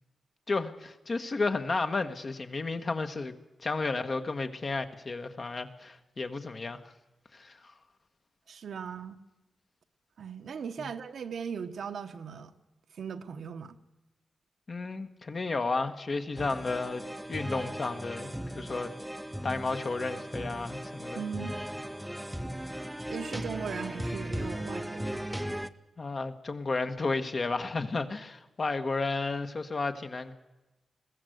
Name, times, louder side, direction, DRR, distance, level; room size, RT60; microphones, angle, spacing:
voice 1, 0.5-3.3 3.6-6.8 7.3-7.6 14.7-17.0 17.3-18.9 19.4-21.2 26.0-30.3, left 3 dB, 40° left, 7 dB, 1.3 m, -32 dB
voice 2, 8.5-9.2 10.2-12.5 13.0-13.8 21.1-21.5 23.1-25.2, right 6 dB, 75° right, 7 dB, 1.2 m, -38 dB
sound 1, 16.4-25.7, equal, 5° right, 0.7 m, -37 dB
21.5 x 15.5 x 7.9 m, 1.1 s
wide cardioid pair, 135°, 0 cm